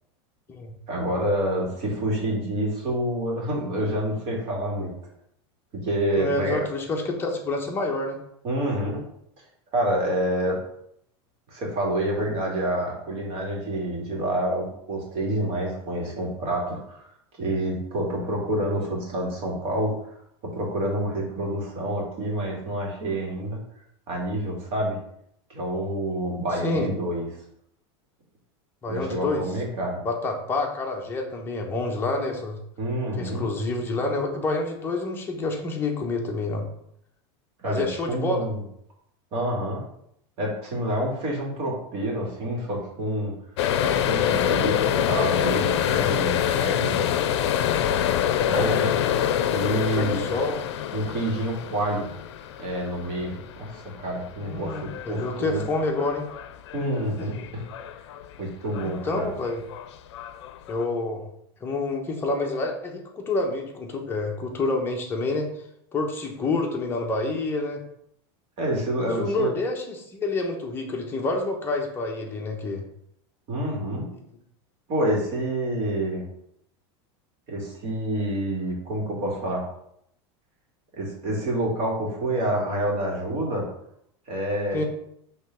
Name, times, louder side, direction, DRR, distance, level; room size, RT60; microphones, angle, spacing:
voice 1, 0.9-4.9 5.7-6.7 8.4-9.0 9.7-10.6 11.5-17.1 17.4-19.9 20.5-23.6 24.1-25.0 25.5-27.3 28.9-30.0 32.8-33.4 37.6-38.6 39.3-39.8 40.4-43.3 43.8-47.1 48.3-48.9 49.5-50.2 50.9-52.1 52.6-55.6 56.7-57.6 58.4-59.3 68.6-69.5 73.5-74.1 74.9-76.3 77.5-79.7 81.0-83.7 84.3-84.8, right 1 dB, 45° right, -1 dB, 2.1 m, -28 dB
voice 2, 6.2-8.2 26.6-26.9 28.8-29.4 30.0-32.6 33.2-36.6 37.6-38.4 49.9-50.6 54.4-56.3 58.8-59.6 60.7-61.2 61.6-65.5 65.9-67.8 69.1-72.8 84.7-84.8, left 2 dB, 15° left, 1 dB, 1.0 m, -28 dB
sound 1, 43.6-58.4 58.7-59.1 59.5-60.8, left 10 dB, 85° left, 0.5 m, -26 dB
5.7 x 3.2 x 5.7 m, 0.74 s
supercardioid pair, 155°, 14 cm